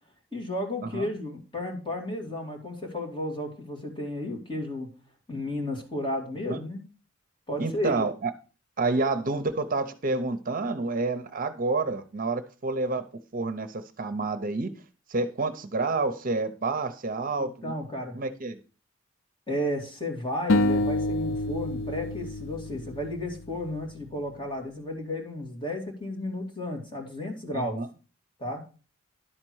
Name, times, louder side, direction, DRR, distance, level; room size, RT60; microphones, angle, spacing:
voice 1, 0.3-4.9 5.3-6.8 7.5-8.1 17.4-18.2 19.5-27.8 28.4-28.6, left 1 dB, 25° left, 1 dB, 2.6 m, -33 dB
voice 2, 7.6-8.3 8.8-13.0 13.3-14.7 15.1-17.7 18.1-18.6 27.5-27.9, right 3 dB, 45° right, 10 dB, 0.8 m, -29 dB
sound 1, 20.5-23.7, left 1 dB, 80° left, 0.5 m, -27 dB
11.0 x 4.4 x 6.3 m, 0.35 s
head